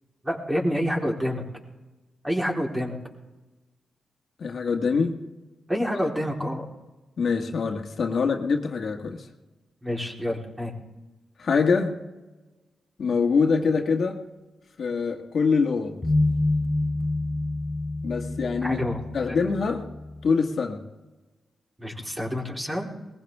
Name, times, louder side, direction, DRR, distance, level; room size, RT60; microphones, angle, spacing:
voice 1, 0.2-1.4 2.2-3.0 5.7-6.7 9.8-10.7 18.6-19.0 19.3-19.4 21.8-22.9, equal, 15° right, -1 dB, 3.9 m, -28 dB
voice 2, 4.4-5.2 7.2-9.2 11.4-11.9 13.0-14.2 14.8-16.0 18.0-18.8 19.1-19.9 20.2-20.8, left 5 dB, 65° left, 2 dB, 1.6 m, -24 dB
sound 1, 16.0-20.3, left 2 dB, 25° left, 1.2 m, -27 dB
20.5 x 15.5 x 3.6 m, 1.1 s
cardioid pair, 55°, 0 cm